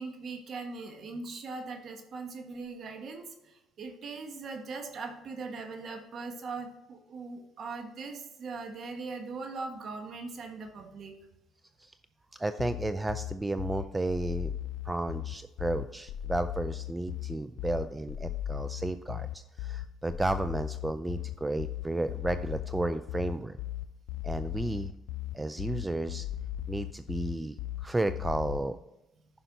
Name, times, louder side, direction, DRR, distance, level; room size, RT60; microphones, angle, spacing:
voice 1, 0.0-11.1 28.5-28.6, right 4 dB, 55° right, 4 dB, 1.5 m, -40 dB
voice 2, 12.4-14.5 14.8-23.6 24.2-24.9 25.3-26.3 26.7-27.5 27.8-28.8, right 2 dB, 15° right, 11 dB, 0.4 m, -32 dB
sound 1, 12.6-28.6, left 13 dB, 80° left, 0.5 m, -37 dB
10.0 x 5.6 x 4.0 m, 0.92 s
supercardioid pair, 80°, 0 cm